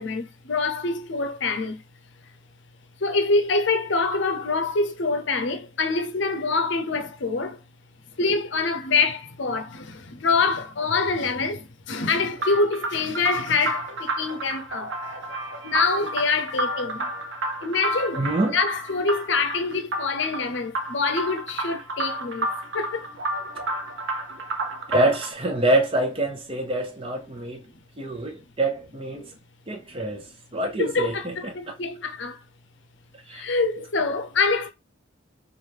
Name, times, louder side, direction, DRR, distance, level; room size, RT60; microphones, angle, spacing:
voice 1, 0.0-1.8 3.0-7.6 8.2-14.9 15.6-17.1 17.6-22.5 22.7-23.1 30.8-32.4 33.3-34.7, left 4 dB, 65° left, 0.7 m, -25 dB
sound 1, 12.4-25.3, right 1 dB, 70° right, 0.7 m, -31 dB
voice 2, 18.2-18.6 24.9-27.7 28.0-29.3 29.7-31.2 31.4-31.8 33.3-33.5, right 2 dB, 30° right, 0.8 m, -26 dB
3.3 x 2.6 x 4.5 m
head